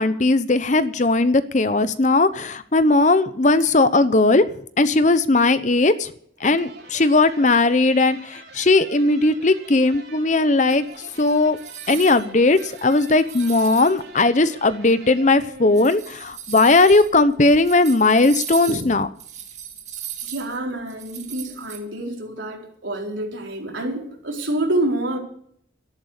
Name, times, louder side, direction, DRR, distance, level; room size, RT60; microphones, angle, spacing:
voice 1, 0.0-4.4 4.8-6.1 6.4-10.8 11.2-11.6 11.9-19.1, left 2 dB, 40° left, 13 dB, 0.8 m, -18 dB
sound 1, 6.4-16.3, right 2 dB, 55° right, 3.8 m, -44 dB
sound 2, 10.7-12.2 12.5-14.0 14.6-14.7 15.5-21.8, right 9 dB, 35° right, 2.3 m, -37 dB
voice 2, 20.2-25.2, right 1 dB, 80° right, 0 dB, 4.2 m, -27 dB
13.5 x 11.0 x 6.7 m, 0.65 s
head